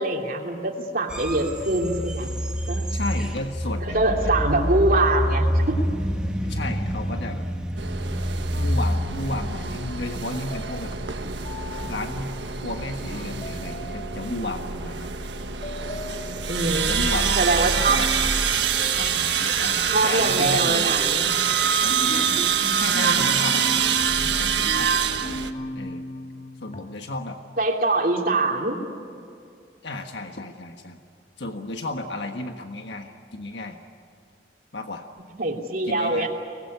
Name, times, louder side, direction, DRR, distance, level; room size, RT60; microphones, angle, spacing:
voice 1, 0.0-2.3 2.7-2.9 3.8-5.8 16.5-18.0 19.9-21.3 27.6-28.8 35.4-36.3, right 2 dB, 50° right, 1 dB, 3.0 m, -24 dB
sound 1, 1.1-20.6, equal, 5° right, 2.3 m, -30 dB
voice 2, 2.9-4.3 6.4-7.5 8.5-10.9 11.9-15.1 16.9-18.5 18.9-21.0 21.8-22.5 22.7-23.8 24.3-24.9 25.7-26.1 26.6-27.4 29.8-31.0 31.4-33.8 34.7-35.0 35.8-36.3, left 2 dB, 85° left, 4 dB, 1.5 m, -33 dB
sound 2, 7.8-25.5, right 7 dB, 85° right, 1.4 m, -25 dB
sound 3, 8.5-12.4 13.1-14.6 15.6-16.8 17.6-19.5 19.8-26.8, left 1 dB, 40° left, 2.1 m, -37 dB
24.5 x 20.5 x 9.6 m, 2.4 s
head